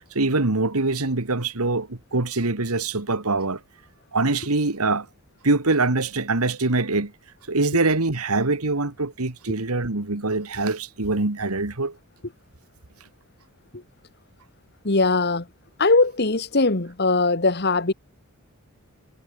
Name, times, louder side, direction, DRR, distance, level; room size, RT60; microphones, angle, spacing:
voice 1, 0.1-3.6 4.1-5.1 5.4-7.1 7.5-12.0, right 3 dB, 85° right, 2.0 m, -24 dB
voice 2, 14.8-15.5 15.8-17.9, left 3 dB, 50° left, 1.7 m, -20 dB
head